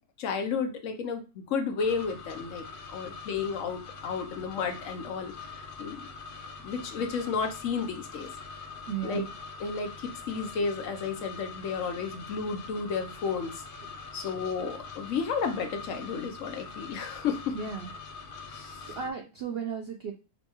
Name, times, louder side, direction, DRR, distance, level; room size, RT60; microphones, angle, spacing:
voice 1, 0.2-6.1 6.6-8.3 9.0-9.2 9.6-13.6 14.1-17.5 18.5-18.9, left 5 dB, 65° left, 6 dB, 0.8 m, -32 dB
sound 1, 1.8-19.1, left 4 dB, 90° left, 0.4 m, -44 dB
voice 2, 8.9-9.3 17.5-17.9 18.8-20.1, right 7 dB, 75° right, 3 dB, 0.5 m, -35 dB
5.3 x 2.3 x 2.9 m, 0.31 s
omnidirectional pair, 1.7 m